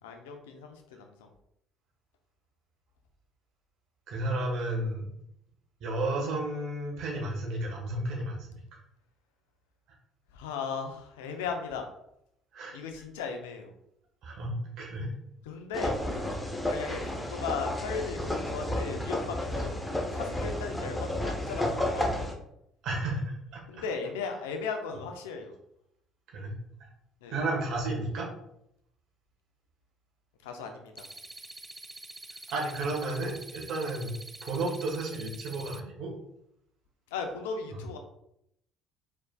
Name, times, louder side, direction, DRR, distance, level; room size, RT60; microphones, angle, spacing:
voice 1, 0.0-1.3 10.3-11.9 12.7-13.7 15.4-15.9 16.7-22.3 23.7-25.5 27.2-27.4 30.4-31.1 37.1-38.0, left 5 dB, 75° left, 5 dB, 0.6 m, -37 dB
voice 2, 4.1-5.1 5.8-8.4 12.5-12.8 14.2-15.1 16.2-16.3 22.8-23.8 26.3-26.6 27.3-28.3 32.5-34.1 34.4-36.1, right 2 dB, 60° right, -1 dB, 1.4 m, -32 dB
sound 1, 15.7-22.3, left 1 dB, 10° left, 0.9 m, -32 dB
sound 2, 31.0-35.8, right 2 dB, 15° right, 0.4 m, -46 dB
4.6 x 4.4 x 2.3 m, 0.77 s
figure-of-eight pair, 55°, 0 cm